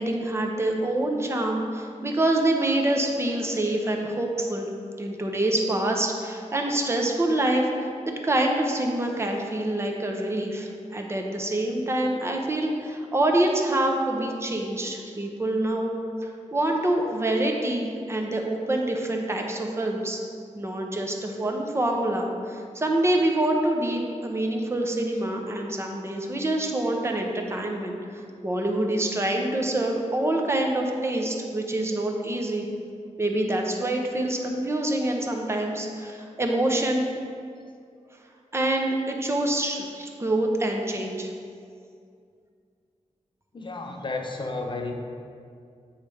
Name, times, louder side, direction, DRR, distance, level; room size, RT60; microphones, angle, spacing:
voice 1, 0.0-4.7 5.0-15.9 16.2-20.2 20.5-32.7 33.2-37.0 38.5-41.3, right 1 dB, 20° right, 1 dB, 0.7 m, -26 dB
voice 2, 43.5-44.9, left 3 dB, 40° left, 3 dB, 0.6 m, -32 dB
8.0 x 3.2 x 4.8 m, 2.3 s
wide cardioid pair, 125°, 13 cm